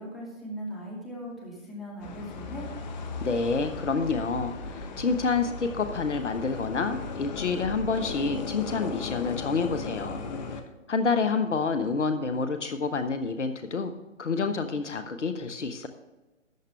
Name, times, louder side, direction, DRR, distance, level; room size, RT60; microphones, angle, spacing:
voice 1, 0.0-2.7, equal, ahead, -5 dB, 2.4 m, -39 dB
sound 1, 2.0-10.6, left 4 dB, 35° left, 1.2 m, -36 dB
voice 2, 3.2-10.2 10.9-13.9 14.2-15.9, left 4 dB, 65° left, 9 dB, 1.2 m, -28 dB
13.5 x 9.8 x 3.3 m, 1.1 s
figure-of-eight pair, 140°, 39 cm